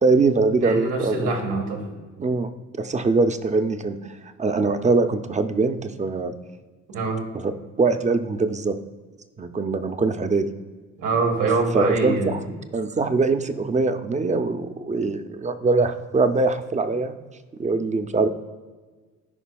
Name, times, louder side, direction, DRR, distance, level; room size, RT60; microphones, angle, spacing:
voice 1, 0.0-1.3 2.2-2.5 2.8-4.0 4.4-6.3 7.4-7.5 7.8-8.8 9.4-10.5 11.7-17.2 17.6-18.3, right 3 dB, 25° right, 9 dB, 0.6 m, -22 dB
voice 2, 0.6-1.8 6.9-7.2 11.0-12.3, right 3 dB, 90° right, 1 dB, 1.6 m, -24 dB
14.5 x 5.0 x 2.3 m, 1.4 s
cardioid pair, 90°, 30 cm